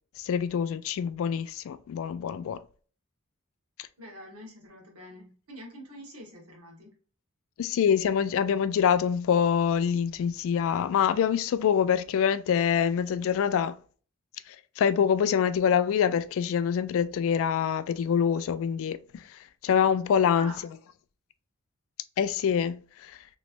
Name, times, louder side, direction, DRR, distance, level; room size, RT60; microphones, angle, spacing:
voice 1, 0.2-2.6 7.6-13.8 14.5-19.2 19.6-20.7 22.2-23.2, left 7 dB, 65° left, 0.3 m, -25 dB
voice 2, 4.0-6.9 20.4-20.7, equal, 85° right, 1.4 m, -45 dB
3.1 x 3.1 x 2.5 m
head